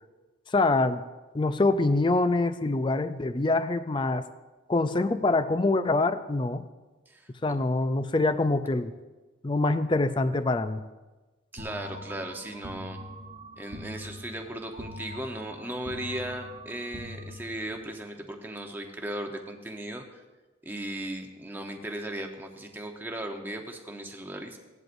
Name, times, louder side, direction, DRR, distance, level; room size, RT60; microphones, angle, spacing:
voice 1, 0.5-1.0 1.3-4.2 4.7-6.6 7.4-8.9 9.4-10.8, left 2 dB, 25° left, 11 dB, 0.4 m, -25 dB
voice 2, 7.1-7.6 11.5-13.0 13.6-20.2 20.6-24.6, right 1 dB, 10° right, 3 dB, 0.9 m, -37 dB
sound 1, 11.6-17.9, equal, 35° right, 1.0 m, -43 dB
16.5 x 10.5 x 2.6 m, 1.2 s
head